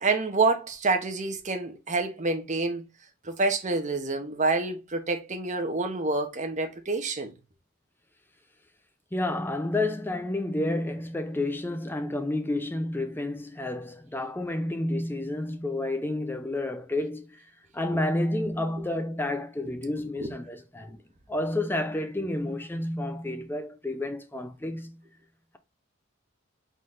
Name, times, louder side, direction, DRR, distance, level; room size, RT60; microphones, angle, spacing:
voice 1, 0.0-2.8 3.2-7.3 19.6-19.7 20.2-20.3, right 3 dB, 35° right, 0.9 m, -27 dB
voice 2, 9.1-17.4 17.7-21.0 21.3-25.0, left 1 dB, 10° left, 0.5 m, -30 dB
4.1 x 3.8 x 3.1 m
head